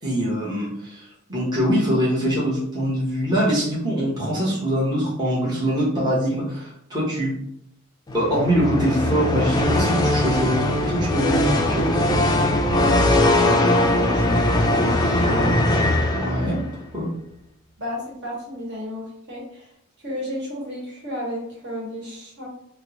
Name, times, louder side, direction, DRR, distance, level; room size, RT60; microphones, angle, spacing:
voice 1, 0.0-7.3 8.1-11.9 16.1-16.6 16.9-17.1, equal, 20° right, -7 dB, 0.9 m, -23 dB
sound 1, 8.1-16.7, left 1 dB, 20° left, 0.3 m, -20 dB
voice 2, 13.2-15.5 17.8-19.7 20.0-22.5, left 1 dB, 55° right, -3 dB, 1.2 m, -32 dB
4.1 x 2.0 x 2.9 m, 0.73 s
head